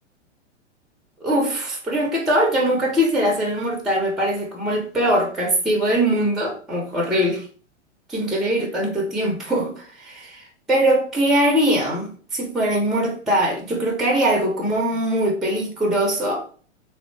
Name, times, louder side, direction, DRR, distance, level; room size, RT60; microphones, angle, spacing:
voice 1, 1.2-7.5 8.1-16.4, right 1 dB, ahead, -1 dB, 0.5 m, -22 dB
3.5 x 2.1 x 3.1 m, 0.41 s
hypercardioid pair, 115°, 36 cm